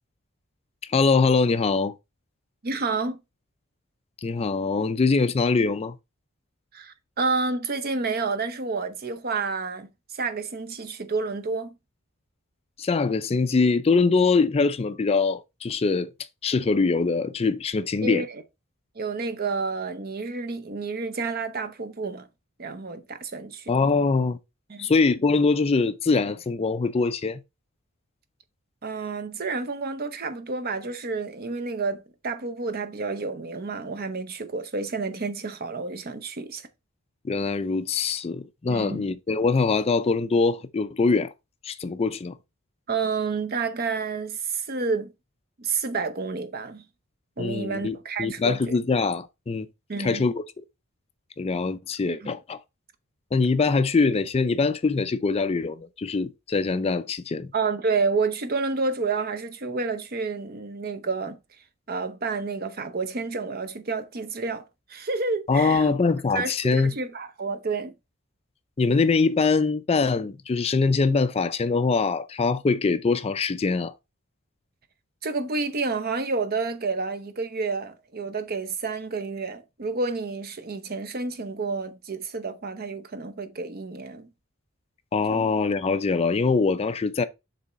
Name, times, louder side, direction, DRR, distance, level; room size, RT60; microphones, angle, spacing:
voice 1, 0.9-1.9 4.2-5.9 12.8-16.1 16.4-18.2 23.7-24.4 24.8-27.4 37.2-41.3 41.6-42.3 47.4-49.7 50.0-50.4 51.4-52.6 53.3-57.5 65.5-66.9 68.8-73.9 85.1-87.2, left 4 dB, 30° left, 0.4 m, -23 dB
voice 2, 2.6-3.2 6.7-11.7 18.0-18.4 18.9-22.3 22.6-23.9 24.7-24.9 28.8-36.7 38.7-39.1 42.9-45.1 45.6-46.8 47.4-48.8 49.9-50.2 52.2-52.3 57.5-61.4 61.9-64.6 64.9-66.0 66.3-67.9 75.2-84.3 85.3-85.5, right 4 dB, 45° right, 0.8 m, -30 dB
6.8 x 3.6 x 4.2 m
head